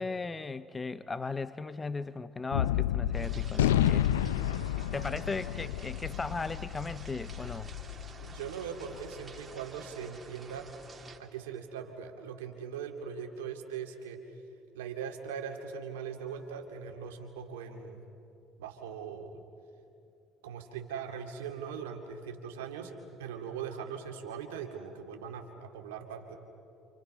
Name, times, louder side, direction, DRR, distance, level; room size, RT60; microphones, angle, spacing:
voice 1, 0.0-4.1 4.9-7.7, left 3 dB, 25° left, 14 dB, 0.8 m, -37 dB
Gunshot gunfire, 2.5-9.1, left 11 dB, 80° left, 0.5 m, -30 dB
sound 1, 3.1-11.2, right 4 dB, 30° right, 2.9 m, -51 dB
voice 2, 7.9-10.7 11.2-14.4 14.7-18.0 18.6-19.4 20.4-26.4, right 7 dB, 80° right, 3 dB, 2.3 m, -40 dB
28.5 x 27.5 x 5.5 m, 2.7 s
hypercardioid pair, 60°, 0 cm